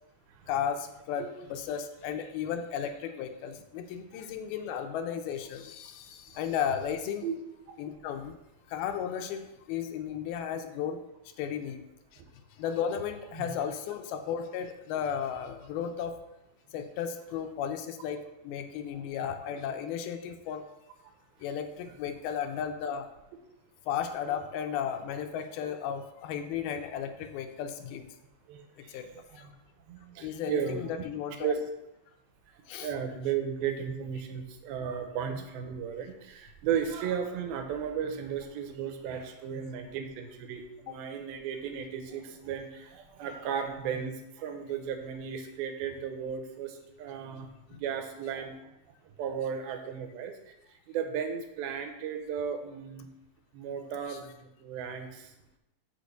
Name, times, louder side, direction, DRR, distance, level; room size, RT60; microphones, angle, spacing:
voice 1, 0.5-7.3 7.8-8.4 8.7-11.0 11.4-11.8 12.1-12.2 12.6-16.2 16.7-20.7 21.4-23.1 23.9-28.1 28.9-29.1 29.4-29.5 30.2-31.5 32.7-32.9 47.7-47.8 54.1-54.2, left 8 dB, 85° left, 7 dB, 2.5 m, -34 dB
voice 2, 28.5-29.5 29.9-30.8 31.4-31.6 32.8-48.5 49.2-50.3 50.9-53.0 53.5-55.3, right 7 dB, 75° right, 6 dB, 2.6 m, -35 dB
6.4 x 5.1 x 6.6 m, 0.89 s
omnidirectional pair, 4.5 m